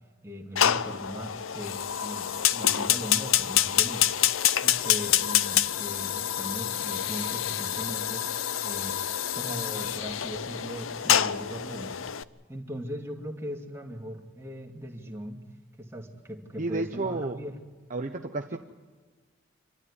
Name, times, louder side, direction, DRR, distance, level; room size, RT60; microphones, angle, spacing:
voice 1, 0.2-4.1 4.6-8.3 8.6-9.0 9.3-12.0 12.5-15.4 15.8-17.6 18.5-18.6, equal, 15° right, 0 dB, 2.6 m, -39 dB
Fire, 0.6-12.2, left 10 dB, 90° left, 0.7 m, -27 dB
voice 2, 16.6-17.4 17.9-18.6, right 2 dB, 40° right, 4 dB, 0.9 m, -31 dB
27.0 x 13.0 x 9.9 m, 1.4 s
head